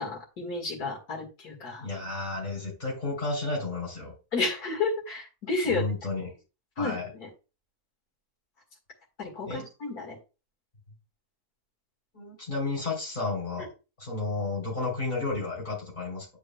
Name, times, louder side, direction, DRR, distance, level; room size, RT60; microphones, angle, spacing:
voice 1, 0.0-1.9 4.3-5.9 6.8-7.3 9.2-10.2, left 3 dB, 85° left, -1 dB, 2.4 m, -31 dB
voice 2, 1.8-4.1 5.7-6.4 6.8-7.0 9.5-9.7 12.1-13.7 14.0-16.3, left 3 dB, 30° left, -3 dB, 3.7 m, -32 dB
9.3 x 5.1 x 2.2 m, 0.30 s
omnidirectional pair, 1.6 m